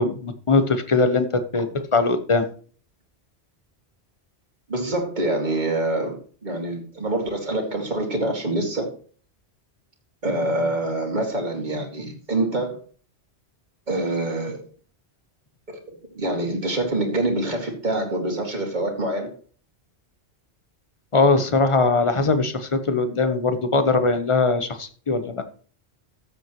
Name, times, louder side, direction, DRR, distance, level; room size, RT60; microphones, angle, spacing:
voice 1, 0.0-2.5 21.1-25.4, left 3 dB, 30° left, 9 dB, 1.0 m, -21 dB
voice 2, 4.7-8.9 10.2-12.8 13.9-14.6 15.7-19.3, right 2 dB, 45° right, 1 dB, 2.3 m, -26 dB
14.0 x 7.8 x 3.0 m, 0.43 s
omnidirectional pair, 1.1 m